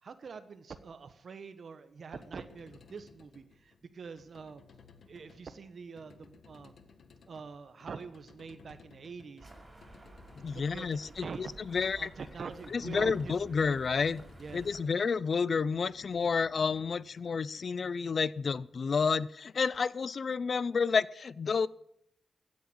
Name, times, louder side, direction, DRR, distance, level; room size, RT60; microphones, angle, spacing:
voice 1, 0.0-4.6 5.1-6.7 7.3-9.5 10.5-11.5 12.0-13.6 14.4-14.7, right 5 dB, 60° right, 11 dB, 1.2 m, -45 dB
sound 1, 2.0-18.2, left 5 dB, 70° left, 1.5 m, -59 dB
sound 2, 9.4-14.8, right 2 dB, 20° right, 5.5 m, -53 dB
voice 2, 10.4-12.1 12.7-14.2 14.5-21.7, left 5 dB, 55° left, 20 dB, 0.6 m, -30 dB
16.0 x 9.4 x 8.5 m, 0.72 s
wide cardioid pair, 110°, 0 cm